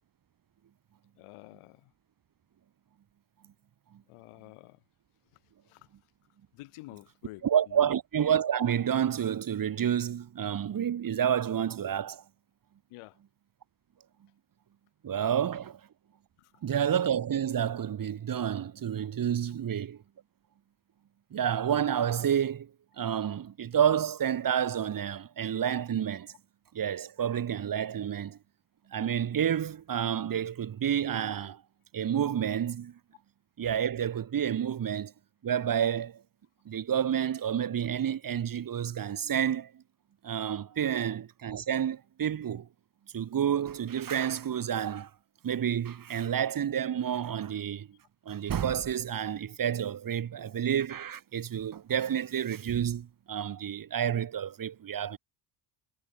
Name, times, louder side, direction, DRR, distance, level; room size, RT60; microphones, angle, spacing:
voice 1, 1.2-1.9 4.1-4.8 5.7-5.9 6.5-7.4 7.7-7.9 12.9-13.2 16.4-16.5 40.8-40.9, left 21 dB, 85° left, 6.4 m, -49 dB
voice 2, 7.4-12.2 15.0-15.8 16.6-20.0 21.3-22.7 23.0-26.3 26.7-28.4 28.9-31.6 31.9-33.0 33.6-35.1 35.4-36.2 36.6-39.8 40.2-42.7 43.1-45.1 45.4-47.9 48.2-55.2, right 9 dB, 40° right, 1.3 m, -29 dB
supercardioid pair, 75°, 49 cm